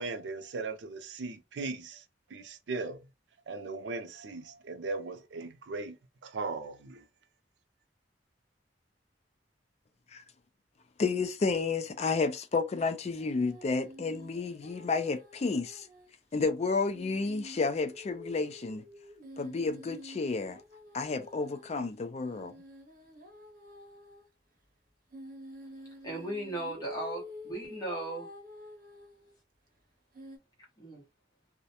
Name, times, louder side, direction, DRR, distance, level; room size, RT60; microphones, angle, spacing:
voice 1, 0.0-2.0 2.3-3.1 3.5-6.0 6.2-7.0, right 3 dB, 85° right, 0.5 m, -38 dB
voice 2, 11.0-15.9 16.3-18.8 19.4-20.6 20.9-22.5, left 4 dB, 40° left, 0.4 m, -31 dB
sound 1, 13.2-16.1 16.4-16.5 16.9-24.3 25.1-29.3 30.1-30.4, left 1 dB, 50° right, 0.8 m, -49 dB
voice 3, 26.0-28.3 30.8-31.0, right 1 dB, 25° left, 1.1 m, -37 dB
2.4 x 2.1 x 2.7 m
head